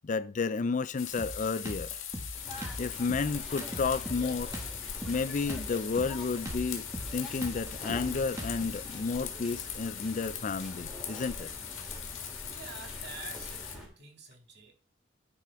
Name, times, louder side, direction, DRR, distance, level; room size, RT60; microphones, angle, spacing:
voice 1, 0.0-1.9 2.8-4.5 5.1-11.5, left 4 dB, 40° left, 0.4 m, -32 dB
sound 1, 1.0-13.8, left 9 dB, 90° left, 1.8 m, -41 dB
Drum kit, 1.2-8.8, equal, 15° right, 1.5 m, -41 dB
sound 2, 2.3-13.9, left 1 dB, ahead, 3.4 m, -45 dB
voice 2, 12.5-14.7, right 5 dB, 55° right, 2.2 m, -48 dB
10.5 x 4.9 x 4.5 m
head